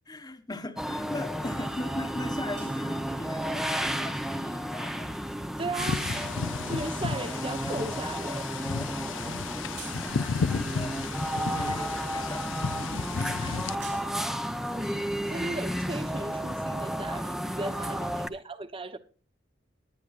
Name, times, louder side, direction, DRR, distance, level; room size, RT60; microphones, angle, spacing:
voice 1, 0.1-5.6 6.9-7.0 10.0-11.0 11.3-13.8 18.0-18.2, left 1 dB, 20° left, 1.1 m, -40 dB
sound 1, 0.8-18.3, equal, ahead, 0.7 m, -32 dB
sound 2, 1.7-12.2 12.7-17.5, right 8 dB, 65° right, 5.0 m, -55 dB
voice 2, 5.6-8.7 13.4-13.9 14.8-19.0, right 2 dB, 30° right, 0.9 m, -37 dB
sound 3, 5.8-13.7, left 5 dB, 80° left, 0.5 m, -33 dB
20.0 x 9.7 x 2.4 m
head